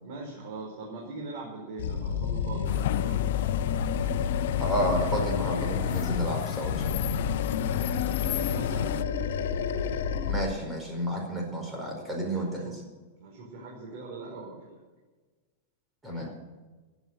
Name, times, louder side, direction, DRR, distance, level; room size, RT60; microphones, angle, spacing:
voice 1, 0.0-3.2 7.6-8.9 12.1-12.8 13.2-14.8, right 3 dB, 55° right, -2 dB, 4.9 m, -42 dB
Animal, 1.8-6.3 6.6-10.5, left 7 dB, 80° left, 1.7 m, -30 dB
sound 1, 2.6-9.0, left 13 dB, 65° left, 0.5 m, -33 dB
voice 2, 4.6-7.1 10.3-12.7 16.0-16.3, right 1 dB, 10° right, 1 dB, 4.7 m, -31 dB
16.0 x 9.3 x 8.1 m, 1.3 s
supercardioid pair, 145°, 0 cm